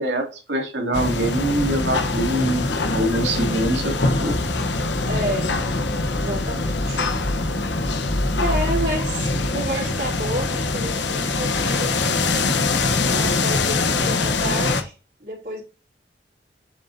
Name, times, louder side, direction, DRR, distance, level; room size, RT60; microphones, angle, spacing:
voice 1, 0.0-4.4, right 1 dB, 80° right, 1 dB, 2.8 m, -24 dB
sound 1, 0.9-14.8, left 3 dB, 85° left, 1.2 m, -23 dB
voice 2, 5.1-5.5 6.1-7.0 7.7-7.9 8.4-12.5 13.1-14.9 15.2-15.6, equal, 55° right, -5 dB, 3.8 m, -30 dB
8.0 x 6.8 x 2.8 m, 0.32 s
head